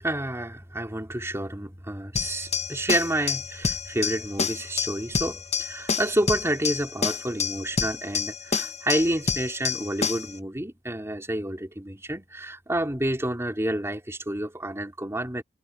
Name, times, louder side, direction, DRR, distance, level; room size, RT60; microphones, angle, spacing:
voice 1, 0.0-15.4, right 1 dB, 15° right, 3.6 m, -29 dB
sound 1, 2.2-10.4, left 5 dB, 40° left, 1.9 m, -28 dB
head